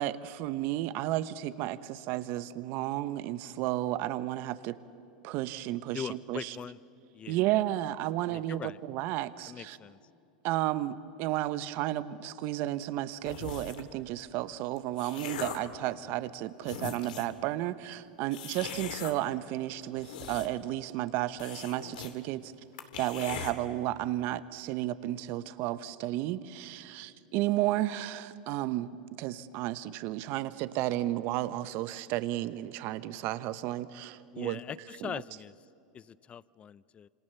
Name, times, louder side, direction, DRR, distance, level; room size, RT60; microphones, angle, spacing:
voice 1, 0.0-4.8 5.2-6.6 7.3-9.8 10.4-22.5 23.0-34.6 35.0-35.1, right 15 dB, 50° right, 14 dB, 1.1 m, -33 dB
voice 2, 5.9-6.8 7.1-7.4 8.3-8.8 9.5-10.0 34.3-35.5 35.9-37.1, left 8 dB, 25° left, 21 dB, 0.5 m, -41 dB
sound 1, 13.3-13.9 14.6-15.7 16.3-16.4 16.6-17.4 18.3-19.1 19.8-20.7 21.0-21.1 21.4-22.1 22.4-22.5 22.8-23.5, left 8 dB, 75° left, 2.4 m, -40 dB
27.5 x 26.5 x 7.0 m, 2.7 s
hypercardioid pair, 110°, 5 cm